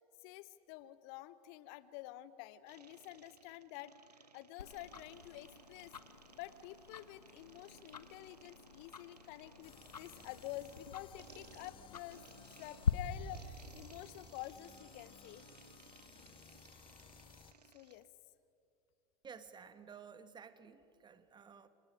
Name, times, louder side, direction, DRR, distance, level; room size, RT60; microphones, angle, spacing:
voice 1, 0.2-3.9 4.3-5.9 6.3-15.5 16.4-16.7 17.7-18.1, left 15 dB, 50° left, 16 dB, 0.8 m, -49 dB
sound 1, 2.7-18.1, right 5 dB, 85° right, 0.9 m, -61 dB
Tick-tock, 4.6-12.9, left 7 dB, 85° left, 1.0 m, -44 dB
sound 2, 9.6-17.5, left 7 dB, 25° left, 1.5 m, -59 dB
voice 2, 19.2-21.7, right 6 dB, 20° right, 11 dB, 1.6 m, -54 dB
29.0 x 26.0 x 5.0 m, 2.7 s
figure-of-eight pair, 85°, 20 cm